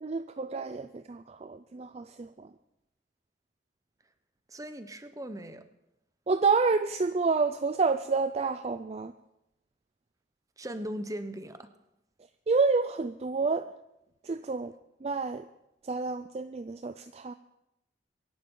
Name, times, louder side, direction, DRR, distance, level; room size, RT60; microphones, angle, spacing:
voice 1, 0.0-2.5 6.3-9.1 12.5-13.7 14.2-14.7 15.0-15.4 15.8-17.3, right 4 dB, 35° right, 11 dB, 0.4 m, -29 dB
voice 2, 4.5-5.6 10.6-11.7, equal, 20° right, 10 dB, 0.9 m, -38 dB
24.0 x 11.5 x 3.9 m, 0.87 s
head